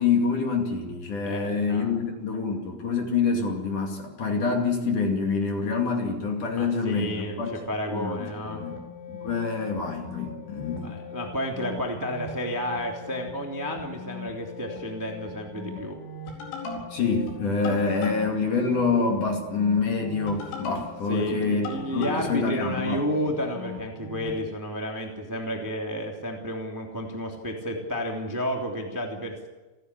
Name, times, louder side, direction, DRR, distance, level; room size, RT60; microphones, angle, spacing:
voice 1, 0.0-7.5 7.9-8.8 9.1-11.0 16.9-23.0, left 4 dB, 45° left, 2 dB, 3.3 m, -26 dB
voice 2, 1.2-2.0 6.6-8.6 10.8-16.0 21.1-29.5, equal, 5° right, 1 dB, 1.6 m, -31 dB
sound 1, 8.3-24.4, left 4 dB, 70° left, 6.7 m, -39 dB
30.0 x 11.5 x 9.9 m, 1.1 s
omnidirectional pair, 5.7 m